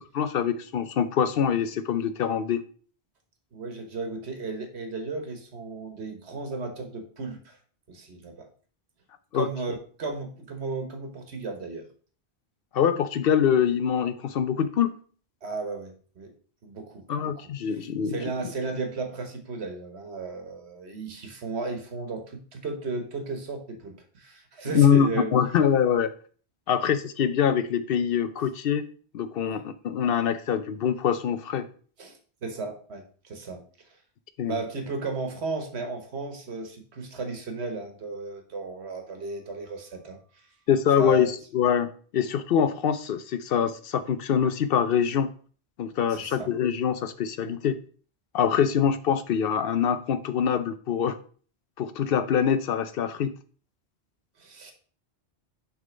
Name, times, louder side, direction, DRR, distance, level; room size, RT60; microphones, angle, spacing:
voice 1, 0.1-2.6 9.3-9.5 12.7-14.9 17.1-18.2 24.7-26.1 26.7-28.9 29.1-31.7 34.4-34.6 40.7-45.3 45.8-47.8 48.3-51.2 51.8-53.3, left 8 dB, 65° left, 12 dB, 0.7 m, -24 dB
voice 2, 3.5-7.6 7.9-8.5 9.3-11.9 15.4-16.3 16.6-17.3 17.7-25.3 29.5-29.6 32.0-34.0 34.5-40.5 41.0-41.3 46.1-46.5 54.4-54.7, right 3 dB, 75° right, 6 dB, 1.4 m, -35 dB
6.6 x 3.7 x 5.0 m, 0.43 s
omnidirectional pair, 1.1 m